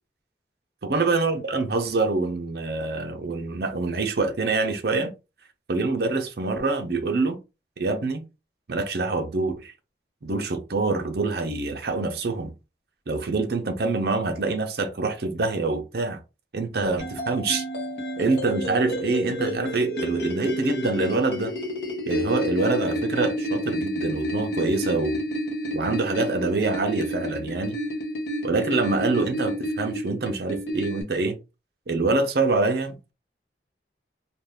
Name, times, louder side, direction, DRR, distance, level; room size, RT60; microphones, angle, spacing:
voice 1, 0.8-5.1 5.7-7.4 7.8-8.2 8.7-9.7 10.2-12.5 13.1-16.2 16.5-17.6 18.2-21.5 22.1-25.2 25.7-27.8 28.4-31.4 31.9-33.1, right 3 dB, 60° right, 0.6 m, -25 dB
sound 1, 17.0-31.0, equal, 70° left, 1.0 m, -30 dB
2.5 x 2.3 x 3.3 m
head